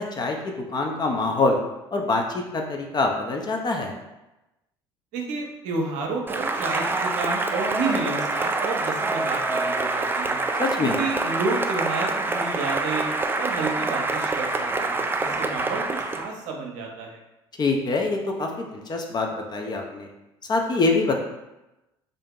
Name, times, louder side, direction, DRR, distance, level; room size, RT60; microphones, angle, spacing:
voice 1, 0.0-1.6 1.9-3.9 10.6-11.0 17.6-20.1 20.5-21.2, left 3 dB, 30° left, 2 dB, 0.6 m, -25 dB
voice 2, 5.1-10.4 10.8-13.1 13.4-15.8 16.1-17.2, right 3 dB, 65° right, 0 dB, 0.7 m, -30 dB
Cheering / Applause, 6.3-16.3, right 3 dB, 15° right, 0.3 m, -26 dB
2.7 x 2.6 x 3.6 m, 0.96 s
hypercardioid pair, 60°, 14 cm